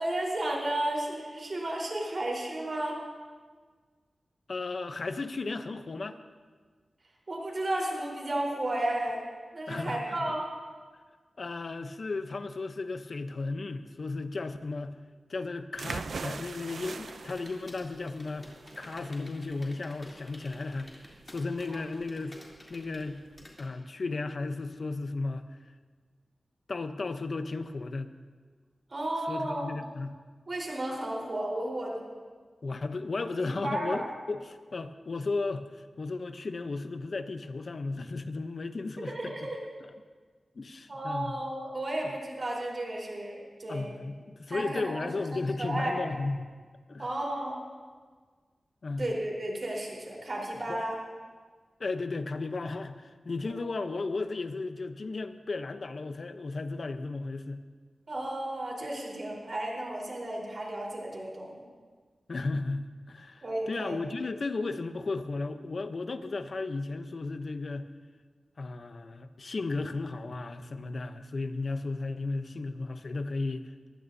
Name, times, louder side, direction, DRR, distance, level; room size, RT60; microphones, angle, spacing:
voice 1, 0.0-3.0 7.3-9.3 9.5-10.5 21.7-21.8 28.9-29.7 30.5-32.0 33.4-34.1 39.0-39.6 40.9-43.9 44.5-46.0 47.0-47.6 49.0-51.0 53.5-53.7 58.1-61.7 63.4-64.0, right 1 dB, 50° right, -2 dB, 4.1 m, -33 dB
voice 2, 4.5-6.2 9.7-10.2 11.4-14.9 15.3-20.9 21.3-22.4 22.7-23.2 23.6-25.4 26.7-28.1 29.3-30.1 32.6-39.5 40.6-41.3 42.0-42.1 43.7-46.5 46.9-47.1 48.8-49.1 50.7-50.8 51.8-57.6 62.3-67.9 68.6-73.7, left 3 dB, 60° left, 9 dB, 0.8 m, -34 dB
sound 1, 15.8-23.5, right 4 dB, 85° right, 0.5 m, -42 dB
sound 2, 16.5-23.6, left 1 dB, 25° left, 3.3 m, -50 dB
23.0 x 15.0 x 2.8 m, 1.5 s
wide cardioid pair, 75°, 0 cm